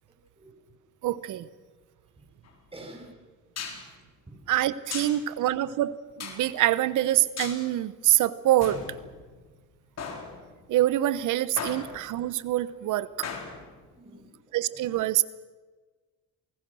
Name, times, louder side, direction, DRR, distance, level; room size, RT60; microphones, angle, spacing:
voice 1, 0.3-0.8 2.0-3.2 3.5-3.8 4.3-4.5 5.1-5.5 14.0-14.8, right 1 dB, 20° right, 1 dB, 6.8 m, -50 dB
voice 2, 1.0-1.5 4.5-8.8 10.7-13.3 14.5-15.2, right 14 dB, 85° right, 17 dB, 1.1 m, -25 dB
sound 1, 2.4-2.5 3.6-3.9 4.9-5.2 6.2-6.5 7.4-7.7 8.6-9.5 10.0-10.7 11.6-12.2 13.2-13.8, left 6 dB, 60° left, 4.2 m, -37 dB
28.0 x 19.0 x 6.4 m, 1.3 s
cardioid pair, 90°, 30 cm